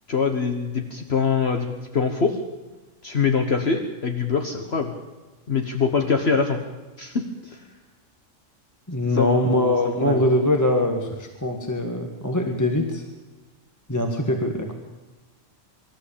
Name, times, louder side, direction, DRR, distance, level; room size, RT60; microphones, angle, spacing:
voice 1, 0.1-1.7 1.9-2.4 3.0-4.9 5.5-6.6 7.0-7.6 9.1-9.7 10.0-10.2, left 5 dB, 55° left, 5 dB, 1.6 m, -24 dB
voice 2, 8.9-13.0 13.9-14.7, left 1 dB, 15° left, 3 dB, 1.7 m, -22 dB
25.0 x 13.5 x 8.7 m, 1.2 s
omnidirectional pair, 1.3 m